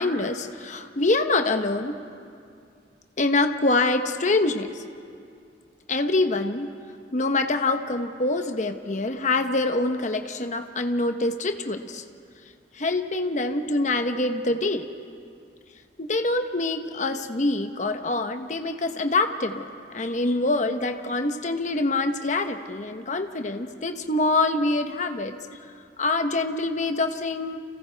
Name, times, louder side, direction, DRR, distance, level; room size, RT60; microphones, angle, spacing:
voice 1, 0.0-2.0 3.2-4.7 5.9-6.7 7.1-12.0 12.7-14.9 16.0-19.7 19.9-25.4 26.0-27.6, left 2 dB, 45° left, 7 dB, 1.0 m, -25 dB
30.0 x 28.5 x 3.5 m, 2.3 s
head